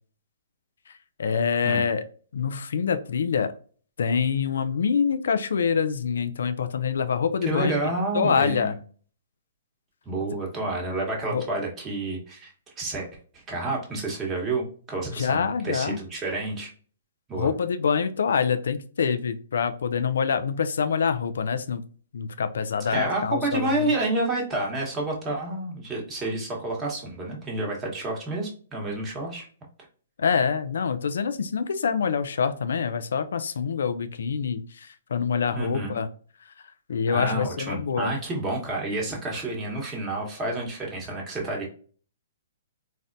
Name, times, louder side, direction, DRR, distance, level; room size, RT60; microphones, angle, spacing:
voice 1, 1.2-2.0 2.3-3.5 4.0-7.8 8.1-8.8 11.3-11.4 15.1-16.0 17.4-21.8 22.1-23.9 30.2-36.1 36.9-38.1, left 6 dB, 70° left, 11 dB, 0.3 m, -25 dB
voice 2, 7.4-8.7 10.0-12.5 12.8-13.1 13.3-16.7 17.3-17.5 22.8-29.5 35.5-36.0 37.1-41.7, right 2 dB, 20° right, -2 dB, 1.0 m, -29 dB
4.0 x 2.1 x 2.5 m, 0.43 s
hypercardioid pair, 135°, 0 cm